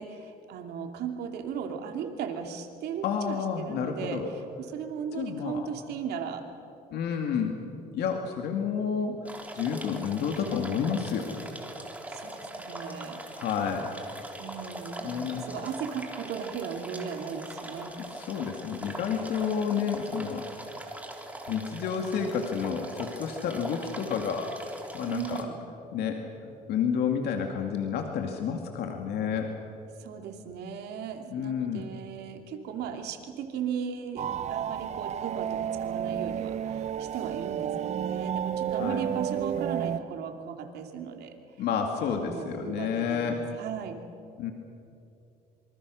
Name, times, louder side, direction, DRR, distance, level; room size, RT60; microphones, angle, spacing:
voice 1, 0.0-6.5 12.1-13.4 14.4-18.0 25.1-25.6 30.0-41.3 42.1-44.0, right 7 dB, 75° right, 4 dB, 2.7 m, -37 dB
voice 2, 3.0-4.3 5.2-5.7 6.9-9.2 9.5-11.4 13.3-13.9 15.0-15.6 18.1-20.4 21.5-24.5 24.9-25.5 25.9-29.5 31.3-31.8 38.7-39.0 41.6-43.4 44.4-44.5, left 7 dB, 75° left, 3 dB, 2.2 m, -30 dB
sound 1, 9.3-25.4, right 1 dB, 10° right, 3.4 m, -41 dB
sound 2, 34.2-40.0, right 9 dB, 40° right, 0.6 m, -31 dB
27.0 x 25.0 x 6.4 m, 2.7 s
cardioid pair, 110°, 17 cm